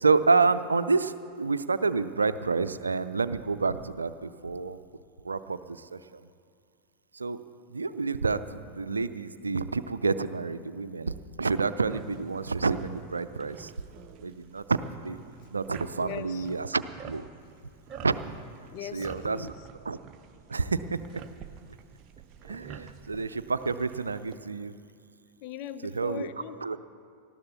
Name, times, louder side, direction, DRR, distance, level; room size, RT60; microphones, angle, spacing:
voice 1, 0.0-4.8 5.2-6.2 7.1-7.4 7.7-13.7 14.2-15.2 15.5-17.3 18.0-18.2 18.9-19.5 19.9-20.0 20.5-21.2 22.5-24.7 26.0-26.3 26.6-26.8, right 4 dB, 75° right, 13 dB, 0.5 m, -28 dB
sound 1, 11.9-24.4, right 7 dB, 35° right, 0.7 m, -48 dB
voice 2, 15.9-16.5 18.7-19.7 25.4-26.8, left 9 dB, 45° left, 11 dB, 0.7 m, -40 dB
19.0 x 13.5 x 4.2 m, 2.3 s
figure-of-eight pair, 90°, 0 cm